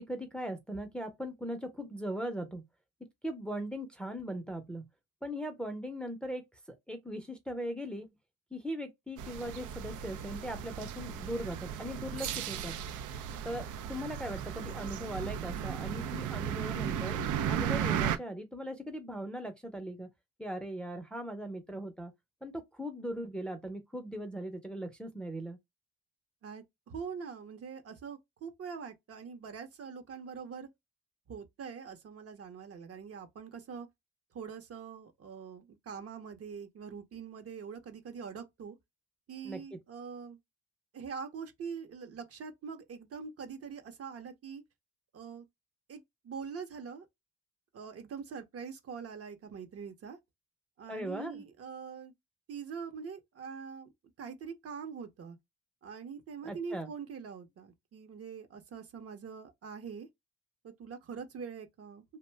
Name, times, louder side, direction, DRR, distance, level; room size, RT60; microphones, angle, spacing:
voice 1, 0.0-2.6 3.2-4.9 5.2-8.1 8.5-12.8 13.4-17.2 17.5-20.1 20.4-22.1 22.4-25.6 39.4-39.6 50.9-51.4 56.4-56.9, equal, 5° left, 0.6 m, -39 dB
sound 1, 9.2-18.2, right 9 dB, 85° right, 0.5 m, -35 dB
voice 2, 26.4-30.7 31.3-33.9 34.3-38.8 39.3-40.4 40.9-44.6 45.1-45.4 45.9-47.1 47.7-50.2 50.8-52.1 52.5-53.9 54.2-55.4 55.8-60.1 60.6-62.0, right 6 dB, 50° right, 0.8 m, -43 dB
2.5 x 2.1 x 3.2 m
cardioid pair, 90°, 30 cm